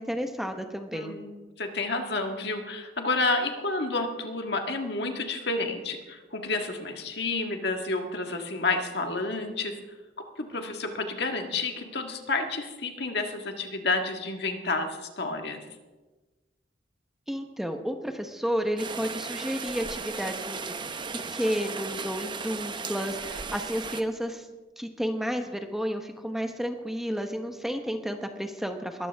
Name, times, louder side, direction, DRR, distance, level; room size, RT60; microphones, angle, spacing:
voice 1, 0.0-1.2 17.3-20.7 21.3-24.5 24.8-29.1, equal, ahead, 5 dB, 1.0 m, -31 dB
voice 2, 0.9-9.8 10.4-15.6, left 3 dB, 65° left, 4 dB, 1.8 m, -30 dB
Rain, 18.8-24.0, right 4 dB, 25° right, 0.7 m, -36 dB
21.5 x 14.0 x 3.5 m, 1.2 s
head